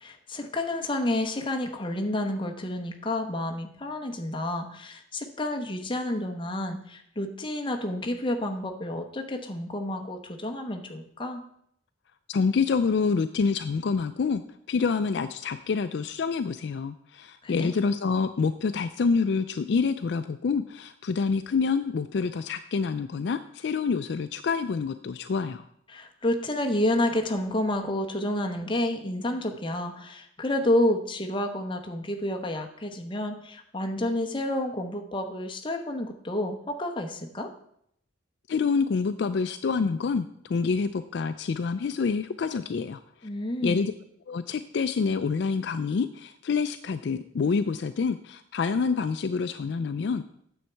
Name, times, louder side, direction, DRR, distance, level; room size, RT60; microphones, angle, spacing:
voice 1, 0.0-11.4 17.4-17.7 25.9-37.5 43.2-43.9, left 1 dB, 25° left, 3 dB, 0.9 m, -30 dB
voice 2, 12.3-14.4 14.7-25.7 38.5-43.0 43.6-43.9 44.3-50.3, left 5 dB, 60° left, 11 dB, 0.3 m, -27 dB
9.2 x 7.1 x 4.5 m, 0.71 s
head